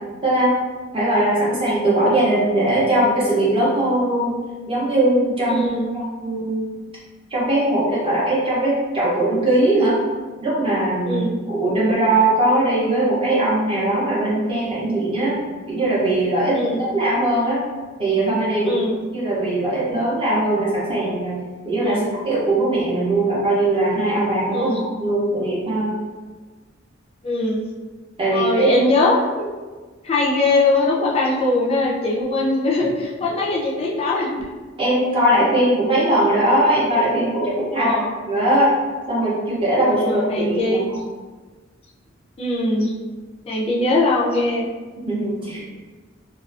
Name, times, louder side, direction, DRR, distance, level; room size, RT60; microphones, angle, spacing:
voice 1, 0.2-0.6 0.9-4.4 4.7-5.7 5.9-6.7 7.3-10.0 10.4-15.4 15.7-17.6 18.0-18.8 19.1-21.4 21.6-25.9 28.2-28.9 34.8-38.0 38.3-38.8 39.1-40.8 45.0-45.6, right 1 dB, 30° right, -7 dB, 0.5 m, -20 dB
voice 2, 5.5-5.9 11.1-11.3 16.5-16.8 18.6-18.9 21.8-22.1 24.5-24.8 27.2-27.6 28.3-29.5 30.0-34.4 37.8-38.1 39.9-40.9 42.4-42.9 43.5-44.7, left 2 dB, 30° left, -4 dB, 0.3 m, -21 dB
2.3 x 2.3 x 2.3 m, 1.4 s
head